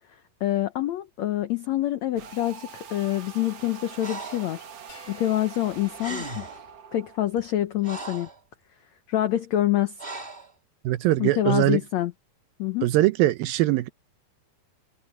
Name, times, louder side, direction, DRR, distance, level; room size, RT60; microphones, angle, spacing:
voice 1, 0.4-4.6 5.1-6.5 6.9-8.3 9.1-10.0 11.2-12.1 12.6-12.9, left 13 dB, 90° left, 1.5 m, -26 dB
sound 1, 2.2-7.2, right 7 dB, 50° right, 2.2 m, -44 dB
Breathing, 4.0-4.5 5.7-5.8 6.0-6.7 7.4-8.4 10.0-10.5, right 2 dB, 15° right, 3.5 m, -37 dB
sound 2, 4.9-7.5, left 4 dB, 55° left, 7.0 m, -54 dB
voice 2, 10.8-11.8 12.8-13.9, right 16 dB, 80° right, 2.4 m, -21 dB
omnidirectional pair, 4.5 m